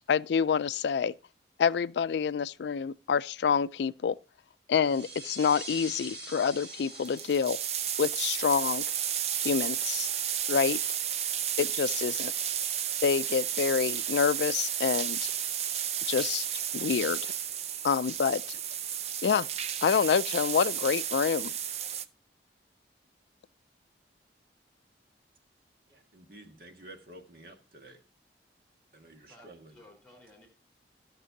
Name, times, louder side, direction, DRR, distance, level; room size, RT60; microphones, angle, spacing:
voice 1, 0.1-1.1 1.6-4.2 4.7-7.6 8.0-8.8 9.4-10.1 10.5-10.8 11.6-12.3 13.0-15.3 16.1-16.4 16.7-17.3 17.8-18.6 19.2-19.5 19.8-21.5, left 6 dB, 75° left, 0.3 m, -27 dB
sound 1, 4.8-10.1, right 2 dB, 75° right, 5.3 m, -45 dB
sound 2, 6.7-6.8 6.9-22.0, right 9 dB, 35° right, 0.4 m, -32 dB
voice 2, 25.9-28.0 28.9-29.8, right 1 dB, 55° right, 1.6 m, -51 dB
voice 3, 29.3-30.5, left 1 dB, 5° left, 4.0 m, -55 dB
17.5 x 6.7 x 2.7 m
head